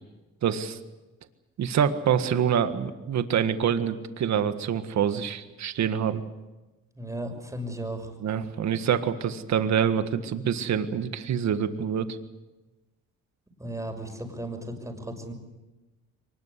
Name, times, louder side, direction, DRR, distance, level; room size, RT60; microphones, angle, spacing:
voice 1, 0.4-0.8 1.6-6.2 8.2-12.2, right 8 dB, 65° right, 9 dB, 1.7 m, -26 dB
voice 2, 6.9-8.1 13.6-15.3, right 1 dB, 10° right, 4 dB, 6.2 m, -35 dB
23.5 x 20.5 x 8.3 m, 1.1 s
cardioid pair, 90°, 30 cm